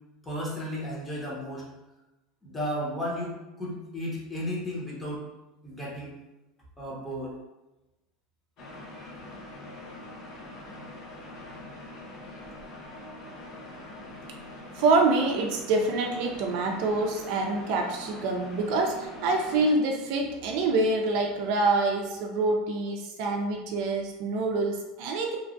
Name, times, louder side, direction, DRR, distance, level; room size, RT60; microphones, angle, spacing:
voice 1, 0.2-1.7 2.4-3.3 3.6-5.2 5.6-6.2 6.8-7.3, equal, 10° left, -5 dB, 0.9 m, -33 dB
sound 1, 8.6-19.7, left 2 dB, 45° left, 0.6 m, -43 dB
voice 2, 14.7-25.4, right 3 dB, 65° right, 2 dB, 0.4 m, -26 dB
3.0 x 2.3 x 2.5 m, 1.0 s
supercardioid pair, 120°, 0 cm